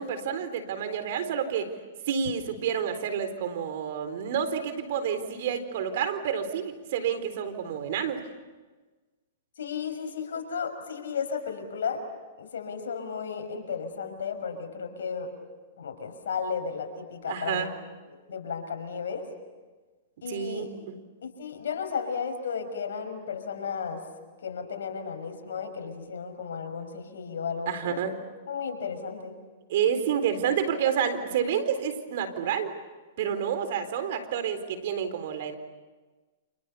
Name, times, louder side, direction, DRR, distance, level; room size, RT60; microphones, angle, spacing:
voice 1, 0.0-1.7 2.1-8.2 17.3-17.7 20.3-20.9 27.7-28.1 29.7-32.7 33.2-35.5, right 8 dB, 60° right, 10 dB, 4.0 m, -29 dB
voice 2, 9.6-12.0 12.4-15.3 15.8-17.7 18.1-19.2 20.2-20.7 21.2-24.0 24.4-28.0 28.5-29.3, left 6 dB, 80° left, 4 dB, 6.2 m, -34 dB
29.5 x 28.5 x 7.0 m, 1.3 s
hypercardioid pair, 130°, 0 cm